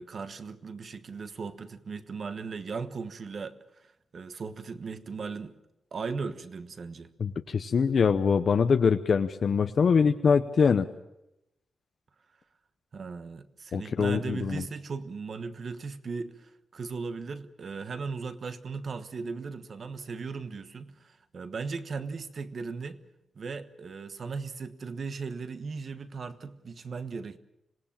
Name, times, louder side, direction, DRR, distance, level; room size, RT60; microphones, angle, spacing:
voice 1, 0.0-5.5 5.9-7.1 12.9-23.0 23.3-27.4, right 4 dB, 45° right, 11 dB, 1.2 m, -37 dB
voice 2, 7.2-10.9 13.7-14.6, left 6 dB, 50° left, 8 dB, 0.7 m, -23 dB
26.0 x 18.5 x 7.3 m, 0.89 s
wide cardioid pair, 160°, 0 cm